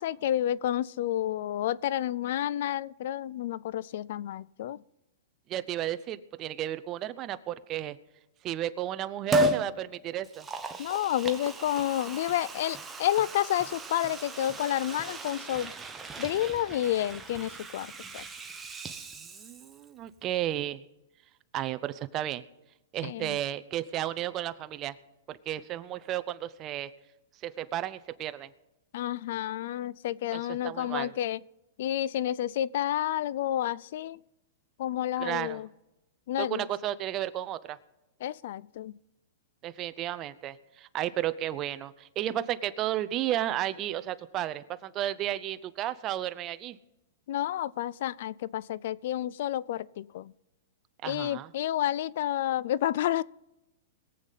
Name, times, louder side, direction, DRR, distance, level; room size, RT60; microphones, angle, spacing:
voice 1, 0.0-4.8 10.8-15.7 16.2-18.2 23.0-23.4 28.9-31.4 31.8-34.2 34.8-35.7 36.3-36.6 38.2-38.9 47.3-50.3 51.0-53.2, left 12 dB, 60° left, 0.3 m, -30 dB
voice 2, 5.5-8.0 8.4-10.5 19.2-20.8 21.5-22.4 22.9-24.9 25.3-26.9 27.4-28.5 30.3-31.1 35.2-35.6 36.4-37.8 39.6-46.8 51.0-51.5, right 12 dB, 30° right, 0.6 m, -33 dB
Liquid, 9.3-9.7 10.2-19.9 20.2-20.3, right 1 dB, 10° right, 1.1 m, -34 dB
22.0 x 8.2 x 4.0 m
hypercardioid pair, 140°, 0 cm